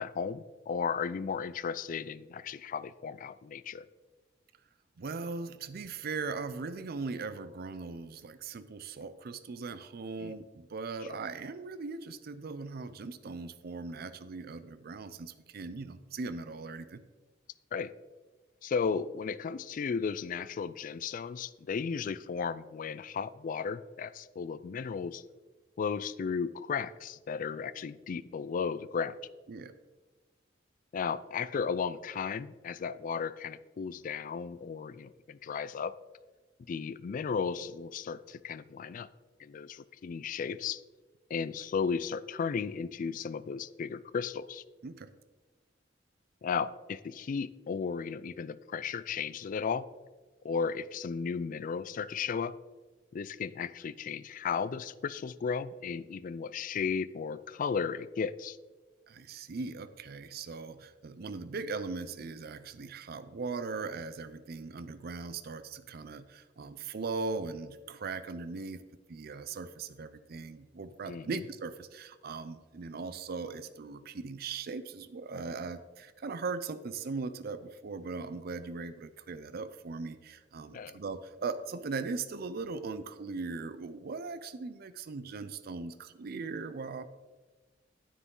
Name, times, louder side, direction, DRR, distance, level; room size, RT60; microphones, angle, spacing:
voice 1, 0.0-3.8 10.2-10.3 17.7-17.9 18.6-25.2 25.8-29.1 30.9-35.9 36.7-39.1 39.4-40.8 41.3-44.6 46.4-49.9 50.4-52.5 53.1-58.6 71.1-71.4 80.7-81.0, left 6 dB, 45° left, 15 dB, 0.3 m, -35 dB
voice 2, 5.0-17.0 29.5-29.7 44.8-45.1 59.1-68.8 69.1-87.0, right 4 dB, 55° right, 13 dB, 0.5 m, -39 dB
9.7 x 9.4 x 3.8 m, 1.3 s
head